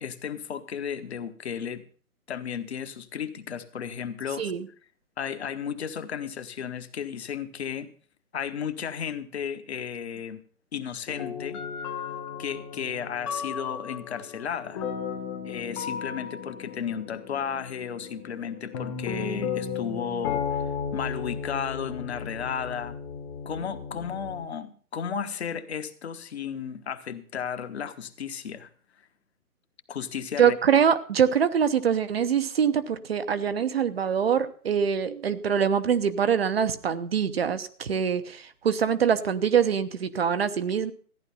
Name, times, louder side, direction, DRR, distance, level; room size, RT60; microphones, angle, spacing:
voice 1, 0.0-1.8 2.3-4.5 5.2-7.9 8.3-10.4 10.7-11.6 12.4-14.8 15.4-20.6 20.9-23.0 23.4-28.7 29.9-30.6, left 7 dB, 45° left, 10 dB, 1.3 m, -34 dB
sound 1, 11.1-24.4, left 6 dB, 20° left, 1.1 m, -35 dB
voice 2, 30.4-40.9, right 7 dB, 40° right, 11 dB, 0.9 m, -24 dB
14.0 x 10.0 x 5.6 m, 0.44 s
figure-of-eight pair, 135°, 45 cm